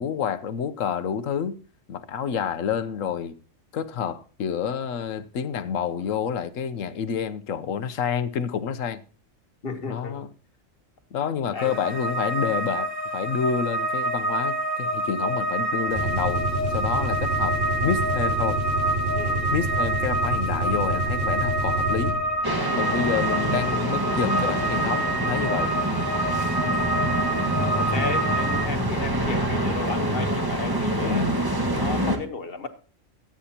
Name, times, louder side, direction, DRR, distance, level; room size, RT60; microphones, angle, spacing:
voice 1, 0.0-1.5 1.9-3.4 3.7-9.0 9.9-10.3 11.1-17.6 17.8-18.6 19.5-22.1 22.7-25.7 31.0-31.4, left 7 dB, 80° left, 1.2 m, -28 dB
voice 2, 9.6-10.2 11.5-11.8 19.1-19.5 27.8-31.3 31.7-32.7, left 4 dB, 45° left, 1.5 m, -33 dB
sound 1, 11.6-28.7, right 1 dB, 10° left, 3.2 m, -27 dB
sound 2, 15.9-22.4, right 1 dB, 50° right, 5.3 m, -28 dB
sound 3, 22.4-32.2, right 1 dB, 15° right, 1.6 m, -26 dB
23.0 x 9.0 x 2.9 m
omnidirectional pair, 1.4 m